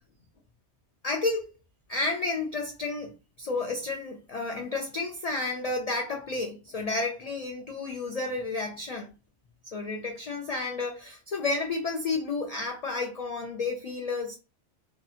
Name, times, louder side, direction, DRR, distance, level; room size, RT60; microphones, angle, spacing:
voice 1, 1.0-1.5 1.9-3.1 3.4-9.1 9.7-14.4, left 3 dB, 70° left, 0.3 m, -31 dB
2.7 x 2.6 x 2.4 m
omnidirectional pair, 1.2 m